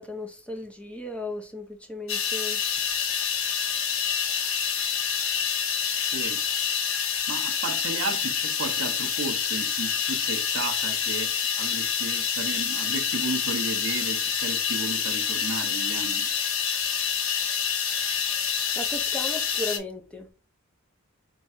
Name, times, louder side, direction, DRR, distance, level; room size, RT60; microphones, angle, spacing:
voice 1, 0.0-2.6 18.8-20.3, left 2 dB, 5° left, 0.7 m, -35 dB
sound 1, 2.1-19.8, left 7 dB, 70° left, 0.9 m, -27 dB
voice 2, 7.3-16.3, right 4 dB, 65° right, 0.7 m, -34 dB
3.4 x 2.7 x 4.2 m
head